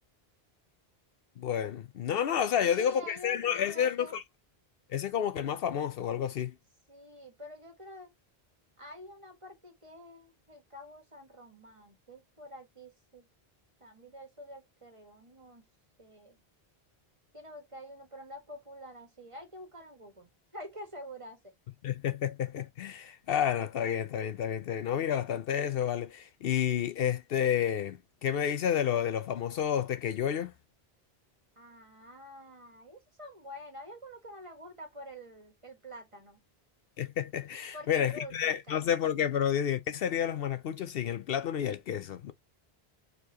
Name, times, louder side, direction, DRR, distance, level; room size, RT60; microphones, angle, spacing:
voice 1, 1.4-4.2 4.9-6.5 21.8-30.5 37.0-42.3, left 9 dB, 70° left, 0.8 m, -30 dB
voice 2, 2.6-4.2 6.9-8.1 8.8-13.3 13.8-15.7 16.0-16.4 17.3-21.5 31.5-36.4 37.7-39.0, equal, 30° right, 1.6 m, -48 dB
4.6 x 4.2 x 2.8 m
omnidirectional pair, 1.1 m